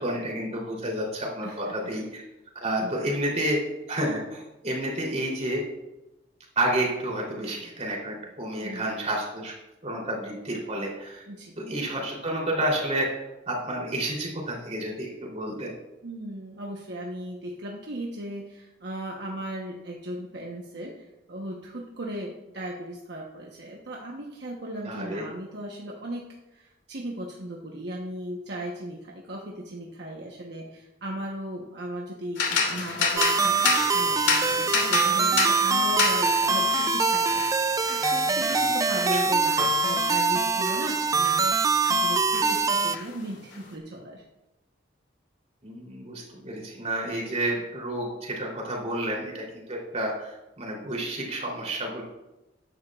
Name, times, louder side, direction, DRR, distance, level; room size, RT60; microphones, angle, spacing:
voice 1, 0.0-2.2 2.6-3.6 3.9-5.6 6.5-9.5 9.8-11.2 11.6-13.1 13.4-15.7 24.8-25.2 39.1-39.2 45.6-52.0, right 1 dB, 40° right, -2 dB, 3.4 m, -30 dB
voice 2, 1.4-1.7 2.8-3.1 8.6-8.9 11.3-11.5 16.0-26.2 26.5-44.2, right 1 dB, 65° right, -1 dB, 1.1 m, -37 dB
sound 1, 32.3-42.0 42.3-43.6, left 5 dB, 85° left, 2.2 m, -30 dB
sound 2, 33.2-43.0, right 4 dB, 20° right, 0.3 m, -24 dB
14.0 x 10.5 x 2.4 m, 0.97 s
head